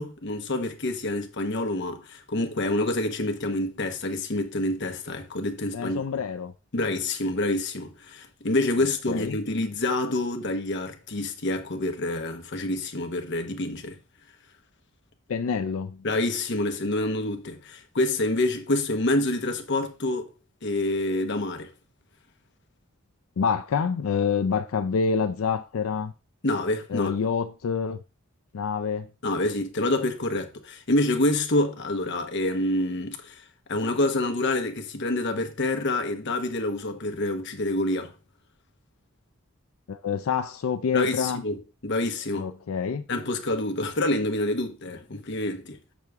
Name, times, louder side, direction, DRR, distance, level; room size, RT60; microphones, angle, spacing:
voice 1, 0.0-6.0 6.7-14.0 16.0-20.3 20.6-21.7 26.4-27.1 29.2-33.4 33.7-38.1 40.9-42.5 43.1-45.8, left 2 dB, 60° left, 1.0 m, -27 dB
voice 2, 5.7-6.5 9.1-9.4 15.3-16.0 23.4-26.1 26.9-28.0 28.5-29.1 39.9-41.4 42.4-43.0, left 6 dB, 85° left, 0.4 m, -27 dB
6.6 x 6.2 x 3.5 m
head